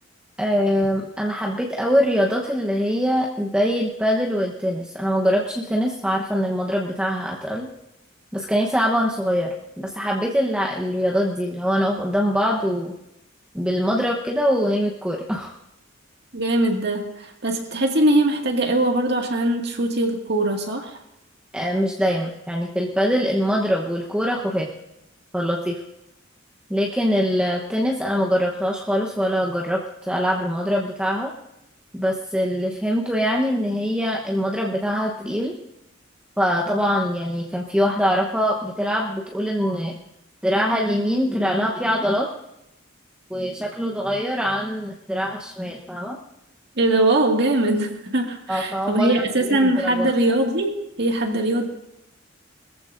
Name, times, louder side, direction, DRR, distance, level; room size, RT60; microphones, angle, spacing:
voice 1, 0.4-7.7 8.3-12.9 13.5-15.5 21.5-24.7 25.3-25.8 26.7-29.8 30.1-31.3 31.9-35.5 36.4-40.0 40.4-42.3 43.3-46.2 48.5-49.2 49.5-50.1, equal, 5° right, -2 dB, 1.0 m, -23 dB
voice 2, 16.3-21.0 46.8-50.7 51.0-51.6, right 1 dB, 60° right, 2 dB, 2.0 m, -21 dB
21.5 x 14.5 x 2.6 m, 0.86 s
head